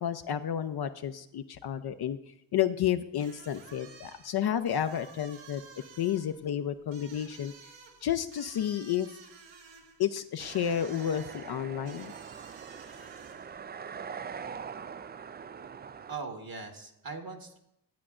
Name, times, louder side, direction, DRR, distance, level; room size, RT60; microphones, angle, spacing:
voice 1, 0.0-2.2 2.5-5.6 6.0-7.5 8.0-9.1 10.0-12.1, left 10 dB, 55° left, 8 dB, 0.7 m, -31 dB
sound 1, 3.2-13.6, right 5 dB, 70° right, 1.4 m, -53 dB
sound 2, 10.4-16.2, right 6 dB, 25° right, 0.3 m, -43 dB
voice 2, 16.1-17.6, right 4 dB, 45° right, 4 dB, 1.5 m, -40 dB
12.5 x 8.3 x 2.5 m, 0.82 s
hypercardioid pair, 40°, 47 cm